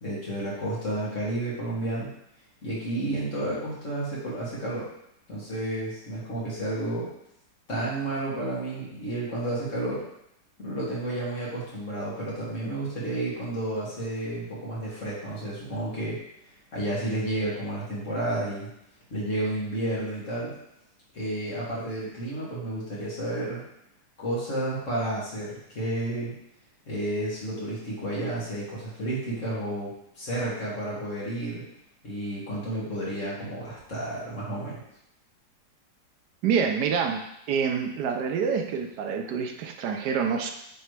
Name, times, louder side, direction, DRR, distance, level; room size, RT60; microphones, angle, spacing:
voice 1, 0.0-2.1 2.6-4.9 5.3-7.1 7.7-10.0 10.6-16.2 16.7-18.7 19.1-20.5 21.1-23.6 24.2-26.3 26.9-31.6 32.0-34.8, right 1 dB, 50° left, -7 dB, 2.2 m, -31 dB
voice 2, 36.4-40.5, right 6 dB, 80° right, 5 dB, 1.2 m, -27 dB
9.0 x 3.3 x 3.2 m, 0.78 s
omnidirectional pair, 1.7 m